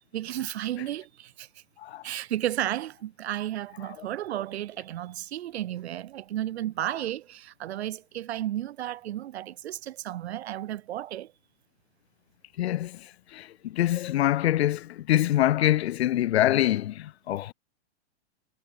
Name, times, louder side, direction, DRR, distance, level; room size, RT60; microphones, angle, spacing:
voice 1, 0.1-1.5 2.0-11.3, right 13 dB, 75° right, 3.2 m, -33 dB
voice 2, 12.6-13.0 13.3-17.5, left 13 dB, 70° left, 2.2 m, -25 dB
supercardioid pair, 165°, 33 cm